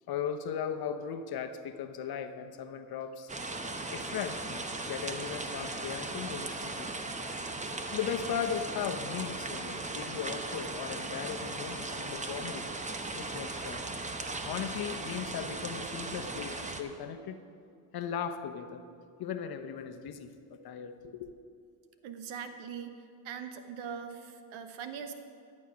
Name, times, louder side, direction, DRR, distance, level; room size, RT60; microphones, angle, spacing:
voice 1, 0.1-3.3 3.9-6.9 7.9-12.7 13.1-13.8 14.4-17.4 17.9-18.9 19.2-21.3, left 8 dB, 50° left, 8 dB, 0.9 m, -37 dB
sound 1, 3.3-16.8, right 2 dB, 15° right, 0.8 m, -38 dB
voice 2, 22.0-22.9 23.2-25.1, right 7 dB, 75° right, 8 dB, 1.1 m, -41 dB
11.5 x 7.3 x 6.1 m, 2.4 s
supercardioid pair, 85°, 48 cm